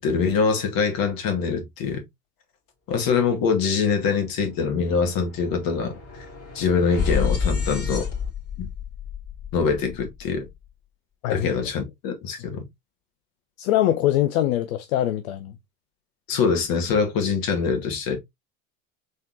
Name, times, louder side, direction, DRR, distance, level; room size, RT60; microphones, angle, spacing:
voice 1, 0.0-2.0 2.9-6.0 6.5-8.1 8.6-8.7 9.5-10.5 11.3-12.6 16.3-18.2, left 5 dB, 55° left, 2.0 m, -24 dB
sound 1, 4.3-10.5, left 6 dB, 35° left, 2.3 m, -30 dB
voice 2, 13.6-15.5, left 13 dB, 75° left, 0.6 m, -23 dB
4.2 x 3.7 x 2.5 m
hypercardioid pair, 75°, 42 cm